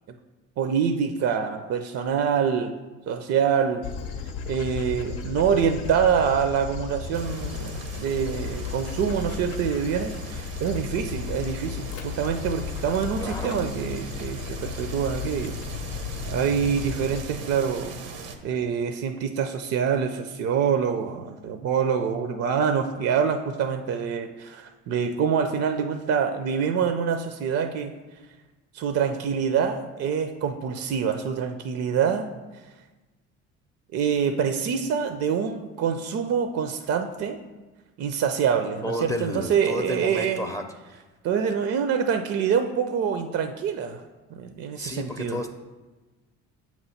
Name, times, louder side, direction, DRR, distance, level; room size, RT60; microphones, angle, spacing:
voice 1, 0.6-2.7 3.1-3.8 4.5-15.6 16.3-17.9 18.4-27.9 28.7-32.3 33.9-37.4 38.0-40.5 41.2-44.0 44.3-45.4, right 7 dB, 50° right, 8 dB, 0.5 m, -25 dB
Dog, 3.8-17.2, left 7 dB, 80° left, 0.6 m, -35 dB
sound 1, 7.1-18.4, right 4 dB, 85° right, 0.8 m, -40 dB
voice 2, 13.2-13.6 38.8-41.0 44.8-45.5, left 1 dB, 10° left, 6 dB, 0.5 m, -32 dB
7.2 x 3.0 x 5.6 m, 1.2 s
supercardioid pair, 75°, 31 cm